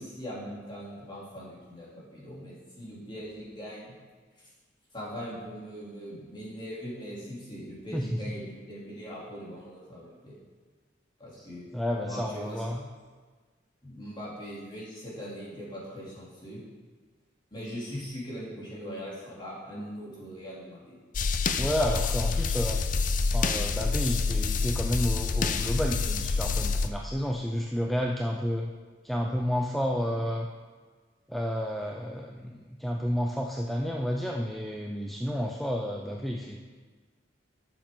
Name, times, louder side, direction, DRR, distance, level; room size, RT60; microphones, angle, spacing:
voice 1, 0.0-3.9 4.9-10.4 11.2-11.7 12.0-12.7 13.8-16.6 17.5-21.0, equal, 25° left, -7 dB, 3.1 m, -40 dB
voice 2, 7.9-8.2 11.4-11.5 11.7-12.8 21.6-22.8 23.3-28.7 29.0-30.5 31.3-36.6, equal, ahead, 0 dB, 0.5 m, -30 dB
sound 1, 21.1-26.9, left 4 dB, 45° left, 0.5 m, -27 dB
11.5 x 7.2 x 3.8 m, 1.4 s
head